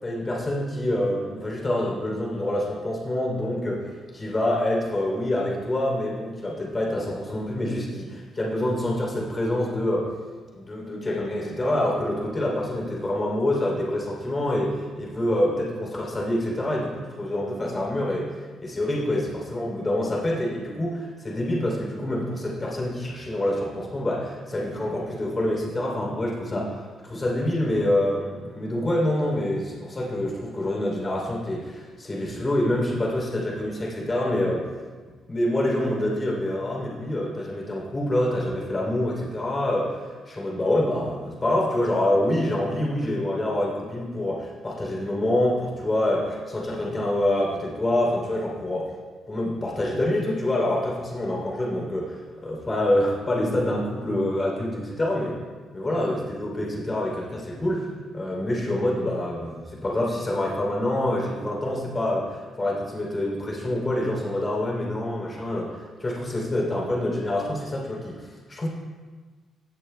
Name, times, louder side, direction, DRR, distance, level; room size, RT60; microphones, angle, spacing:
voice 1, 0.0-10.1 10.5-18.3 18.6-34.6 35.3-48.9 49.3-55.4 55.7-57.9 58.1-68.7, left 1 dB, 25° left, -2 dB, 3.1 m, -26 dB
17.0 x 7.0 x 2.2 m, 1.4 s
cardioid pair, 90°, 0 cm